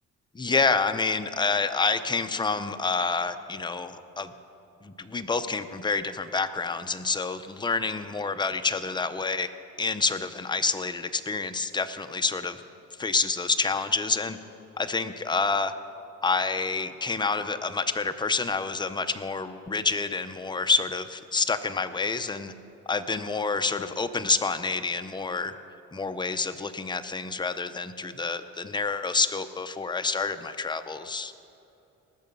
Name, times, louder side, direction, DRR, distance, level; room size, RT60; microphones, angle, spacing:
voice 1, 0.3-4.3 4.8-9.5 9.8-12.6 13.0-14.4 14.8-15.7 16.2-22.5 22.9-25.5 25.9-31.3, left 4 dB, 15° left, 9 dB, 0.6 m, -28 dB
19.5 x 6.7 x 5.4 m, 2.8 s
cardioid pair, 90°, 30 cm